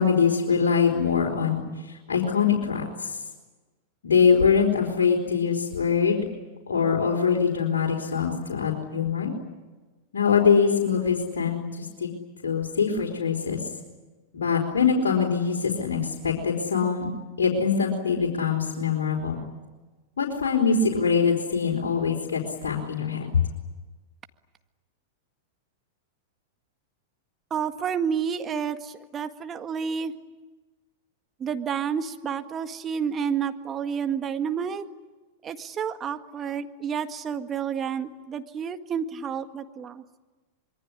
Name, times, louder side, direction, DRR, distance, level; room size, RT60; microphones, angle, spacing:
voice 1, 0.0-1.6 1.9-3.2 4.0-6.2 6.7-9.3 10.1-12.1 12.4-13.6 14.3-17.1 17.4-19.4 20.2-23.4, left 6 dB, 75° left, -3 dB, 4.4 m, -23 dB
voice 2, 27.5-30.1 31.4-34.9 35.4-40.0, right 7 dB, 25° right, 8 dB, 1.8 m, -30 dB
26.0 x 23.0 x 9.9 m, 1.2 s
hypercardioid pair, 100°, 0 cm